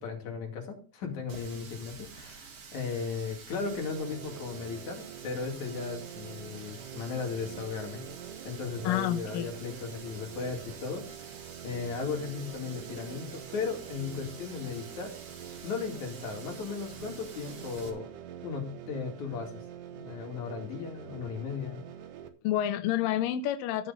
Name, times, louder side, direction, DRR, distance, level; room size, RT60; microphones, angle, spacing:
voice 1, 0.0-8.0 8.4-11.3 11.6-15.1 15.6-18.1 18.4-19.6 19.9-21.8, left 5 dB, 50° left, 1 dB, 3.4 m, -36 dB
Water tap faucet, 1.3-17.9, right 5 dB, 50° right, 1.8 m, -49 dB
sound 1, 3.6-22.3, right 9 dB, 70° right, 2.1 m, -45 dB
voice 2, 8.8-9.5 22.4-23.9, left 11 dB, 80° left, 9 dB, 2.0 m, -29 dB
14.5 x 6.5 x 4.1 m, 0.38 s
omnidirectional pair, 4.8 m